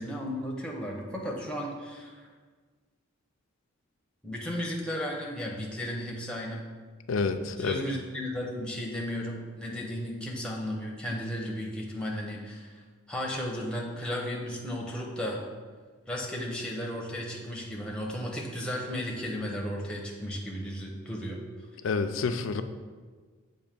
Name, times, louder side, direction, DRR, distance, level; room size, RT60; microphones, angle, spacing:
voice 1, 0.0-2.3 4.2-6.7 7.6-12.8 13.1-15.4 16.1-21.4, equal, 5° left, -1 dB, 0.7 m, -34 dB
voice 2, 7.1-7.8 21.8-22.6, left 4 dB, 70° left, 9 dB, 0.4 m, -28 dB
7.2 x 2.6 x 5.1 m, 1.5 s
head